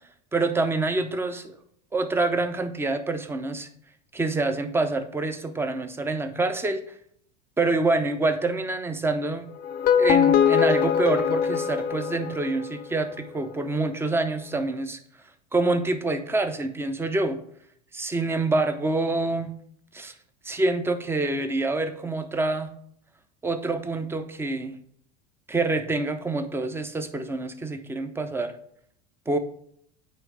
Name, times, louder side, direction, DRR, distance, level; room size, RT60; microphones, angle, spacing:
voice 1, 0.3-1.6 1.9-3.7 4.1-6.8 7.6-9.5 10.0-15.0 15.5-17.4 17.9-19.5 19.9-20.1 20.4-22.7 23.4-24.8 25.5-28.5 29.3-29.4, right 2 dB, 10° right, 9 dB, 0.7 m, -26 dB
sound 1, 9.6-12.8, left 8 dB, 45° left, 0.6 m, -22 dB
8.9 x 3.2 x 4.7 m, 0.65 s
supercardioid pair, 110°, 21 cm